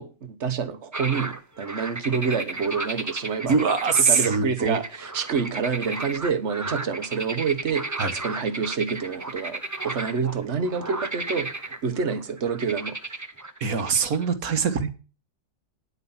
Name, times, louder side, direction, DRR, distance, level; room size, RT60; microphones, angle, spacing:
voice 1, 0.0-3.7 4.1-7.8 8.1-12.9, right 6 dB, 45° right, 1.4 m, -28 dB
sound 1, 0.9-14.3, right 2 dB, 25° right, 0.3 m, -34 dB
voice 2, 3.4-4.8 8.0-8.1 13.6-14.9, right 5 dB, 60° right, 1.7 m, -23 dB
9.9 x 8.2 x 5.7 m
omnidirectional pair, 1.8 m